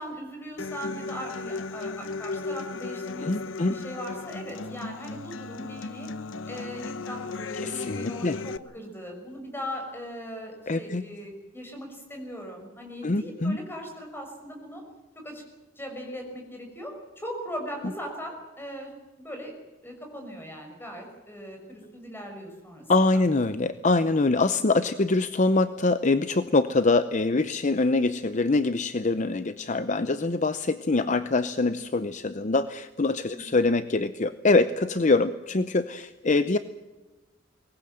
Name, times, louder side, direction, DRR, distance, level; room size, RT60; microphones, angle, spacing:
voice 1, 0.0-6.1 6.5-14.8 15.1-15.4 15.8-18.9 19.2-19.5 19.8-22.8 23.1-23.2 33.3-33.4, equal, 10° left, 3 dB, 6.1 m, -39 dB
Human voice / Acoustic guitar, 0.6-8.6, left 3 dB, 80° left, 0.8 m, -36 dB
voice 2, 3.2-3.7 7.6-8.4 10.7-11.0 13.0-13.6 22.9-36.6, left 3 dB, 40° left, 12 dB, 0.7 m, -24 dB
23.5 x 19.5 x 7.8 m, 1.2 s
head